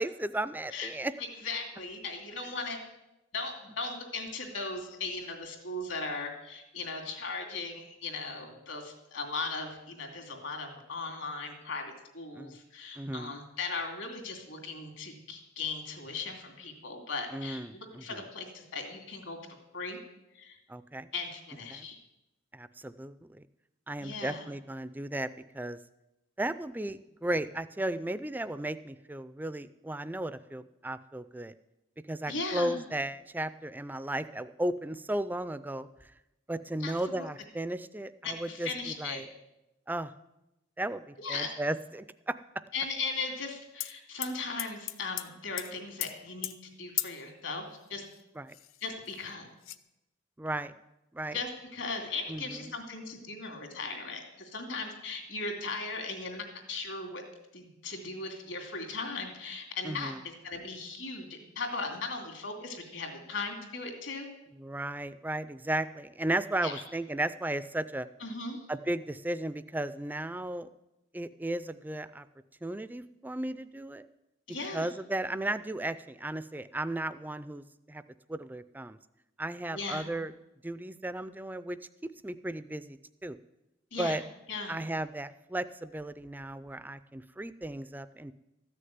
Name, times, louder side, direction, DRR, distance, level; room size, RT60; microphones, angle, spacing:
voice 1, 0.0-1.1 12.3-12.6 13.0-13.3 17.3-18.2 20.7-21.1 21.7-21.9 22.5-23.4 23.9-25.3 25.5-25.8 26.4-31.5 32.1-35.9 36.5-38.7 39.0-39.3 39.9-40.1 40.8-42.4 48.4-48.6 50.4-50.7 51.1-51.4 52.3-52.7 59.8-60.2 64.5-68.1 68.7-70.7 71.1-72.3 72.6-74.1 74.7-78.0 78.3-79.0 79.4-80.3 80.6-83.4 84.0-84.2 84.7-88.3, right 1 dB, 10° right, 15 dB, 0.4 m, -35 dB
voice 2, 1.2-2.8 3.3-19.4 19.7-20.0 20.3-20.6 21.1-22.0 24.0-24.5 32.3-32.8 36.8-37.3 38.2-39.2 41.2-41.5 42.7-48.0 48.8-49.4 51.3-57.2 57.5-64.3 66.6-66.8 68.2-68.7 74.5-74.9 79.7-80.1 83.9-84.2 84.5-84.8, left 3 dB, 70° left, 3 dB, 2.7 m, -38 dB
sound 1, 43.8-43.9 44.2-45.3 45.6-45.7 46.0-46.1 46.4-46.5 47.0-47.2 48.1-48.2 48.5-49.2 49.6-49.8, left 15 dB, 90° left, 0.6 m, -35 dB
14.0 x 6.6 x 9.4 m, 0.94 s
head